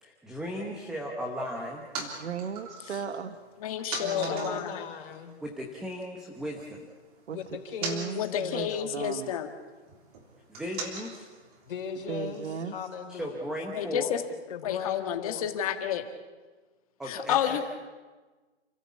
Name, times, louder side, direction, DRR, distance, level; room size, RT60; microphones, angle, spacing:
voice 1, 0.0-1.8 5.4-6.8 10.5-11.2 13.1-14.1 17.0-17.6, equal, ahead, 0 dB, 1.0 m, -36 dB
sound 1, 1.4-6.1 6.3-12.5, right 3 dB, 35° right, 3.3 m, -43 dB
voice 2, 2.0-3.3 4.0-4.6 7.3-7.4 7.8-8.2 8.5-8.7 8.9-9.3 12.1-12.7, right 6 dB, 85° right, 10 dB, 1.4 m, -35 dB
voice 3, 3.6-4.8 8.2-9.5 13.7-14.2 14.6-16.0 17.1-17.6, left 10 dB, 30° left, 7 dB, 1.7 m, -30 dB
voice 4, 4.1-5.4 7.3-9.0 11.7-13.4 14.5-15.5, left 7 dB, 50° left, 2 dB, 4.1 m, -38 dB
29.0 x 14.5 x 8.4 m, 1.3 s
hypercardioid pair, 170°, 34 cm